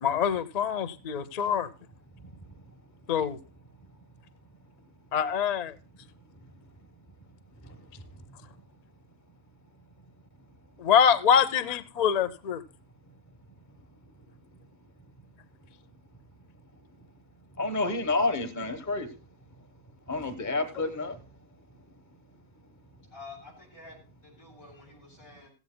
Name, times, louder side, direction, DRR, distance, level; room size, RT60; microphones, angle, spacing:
voice 1, 0.0-1.7 3.1-3.4 5.1-5.8 10.8-12.6, left 8 dB, 45° left, 0.5 m, -24 dB
voice 2, 2.1-2.6 7.6-8.4 17.5-19.2 20.1-21.2, left 3 dB, 15° left, 0.9 m, -31 dB
voice 3, 23.1-25.5, left 3 dB, 85° left, 7.9 m, -49 dB
16.0 x 15.5 x 2.2 m
omnidirectional pair, 1.5 m